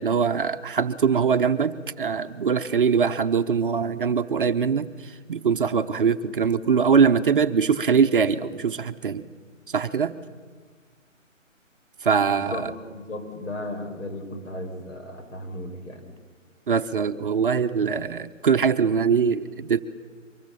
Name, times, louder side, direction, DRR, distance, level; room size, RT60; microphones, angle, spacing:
voice 1, 0.0-9.3 9.7-10.1 12.0-12.7 16.7-19.8, right 6 dB, 40° right, 8 dB, 0.9 m, -22 dB
voice 2, 12.3-12.7 12.9-16.1, left 1 dB, 70° left, 4 dB, 5.6 m, -35 dB
24.0 x 22.0 x 6.9 m, 1.5 s
figure-of-eight pair, 150°, 39 cm